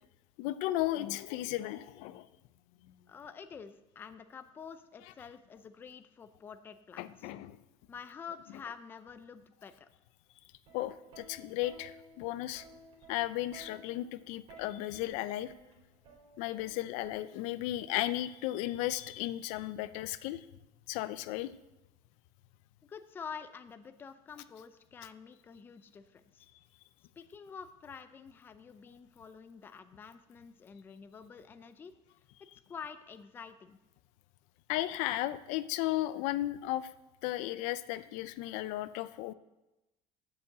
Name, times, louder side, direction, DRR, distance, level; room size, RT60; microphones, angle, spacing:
voice 1, 0.4-2.3 7.0-7.6 10.7-12.6 13.1-15.5 16.4-20.4 20.9-21.5 34.7-36.9 37.2-39.3, left 15 dB, 70° left, 14 dB, 0.5 m, -35 dB
voice 2, 3.1-7.3 7.9-9.9 22.8-26.5 27.2-31.9 32.7-33.8, left 6 dB, 15° left, 10 dB, 0.4 m, -48 dB
Plucked string instrument, 10.5-17.7 18.8-19.1, right 1 dB, 50° right, 3.8 m, -55 dB
8.3 x 7.2 x 7.8 m, 0.98 s
cardioid pair, 170°, 12 cm